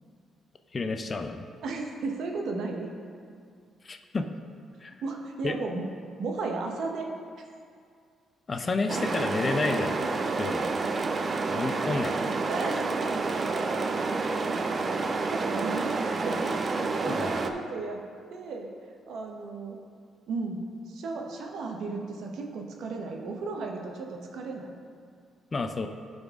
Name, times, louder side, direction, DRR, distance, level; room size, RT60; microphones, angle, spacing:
voice 1, 0.7-1.5 3.8-4.3 4.8-4.9 5.4-5.6 8.5-10.0 10.4-10.7 11.5-12.2 17.0-17.5 25.5-25.9, left 3 dB, 35° left, 6 dB, 0.5 m, -30 dB
voice 2, 1.6-2.9 5.0-5.8 6.2-7.1 12.5-13.0 13.3-13.7 14.9-15.0 15.3-18.0 18.3-18.7 19.1-19.8 20.3-24.8, right 3 dB, 75° right, 2 dB, 0.9 m, -34 dB
sound 1, 8.9-17.5, right 3 dB, 40° right, 0.4 m, -29 dB
11.5 x 4.0 x 3.6 m, 2.2 s
cardioid pair, 90°, 0 cm